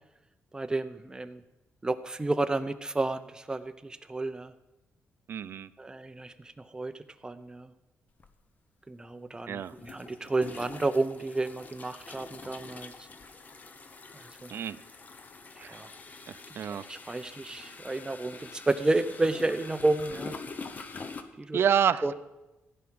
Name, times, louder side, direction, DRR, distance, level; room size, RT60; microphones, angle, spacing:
voice 1, 0.5-1.4 1.8-4.5 5.8-6.9 7.2-7.7 8.9-12.9 14.4-14.5 15.6-15.9 16.9-20.3 21.4-21.6 22.0-22.1, right 2 dB, 15° right, 11 dB, 0.8 m, -31 dB
voice 2, 5.3-5.7 9.5-9.7 14.5-14.8 15.6-15.8 16.3-16.8 21.5-22.1, right 8 dB, 55° right, 14 dB, 0.6 m, -28 dB
sound 1, 8.2-8.3 9.7-21.2, left 4 dB, 35° left, 1.1 m, -45 dB
15.5 x 6.0 x 9.5 m, 0.99 s
cardioid pair, 125°, 5 cm